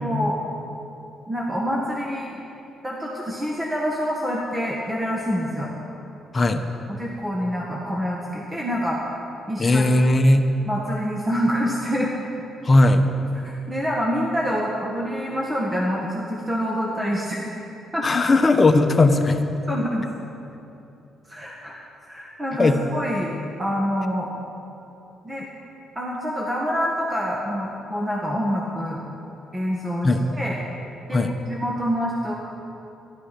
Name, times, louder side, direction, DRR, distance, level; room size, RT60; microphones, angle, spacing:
voice 1, 0.0-0.4 1.3-2.4 2.8-5.7 6.9-9.1 9.5-9.8 10.6-12.3 13.4-17.4 17.9-18.1 19.7-20.1 21.3-21.8 22.1-24.3 25.2-25.5 25.9-29.0 29.5-30.6 31.1-32.3, equal, 20° right, -3 dB, 1.6 m, -26 dB
voice 2, 6.3-6.6 9.6-10.5 12.6-13.0 18.0-19.4 22.5-22.8 30.0-30.2 31.1-31.3, left 2 dB, 30° left, 7 dB, 0.9 m, -17 dB
12.5 x 11.5 x 5.8 m, 2.9 s
cardioid pair, 90°, 0 cm